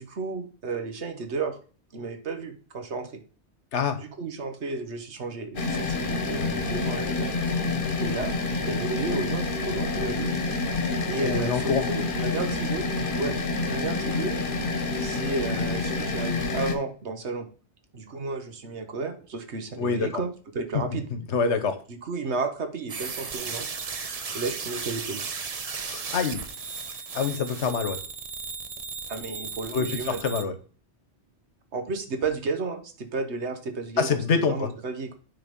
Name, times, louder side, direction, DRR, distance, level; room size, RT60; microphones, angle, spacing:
voice 1, 0.0-1.6 1.9-3.2 4.0-7.3 8.0-8.4 8.6-10.3 11.1-12.9 13.1-14.3 15.0-17.5 17.9-21.0 21.9-23.7 24.3-25.2 29.1-30.2 31.7-34.2 34.4-35.1, right 4 dB, 75° right, 7 dB, 1.4 m, -32 dB
sound 1, 5.6-16.8, left 3 dB, 50° left, 1.2 m, -28 dB
voice 2, 11.2-11.9 19.8-20.1 20.7-21.8 25.8-26.4 27.1-28.0 29.7-30.5 34.0-34.7, left 5 dB, 80° left, 9 dB, 1.3 m, -26 dB
sound 2, 22.9-30.4, right 5 dB, 40° right, 0.7 m, -35 dB
9.4 x 3.9 x 5.2 m, 0.40 s
omnidirectional pair, 1.2 m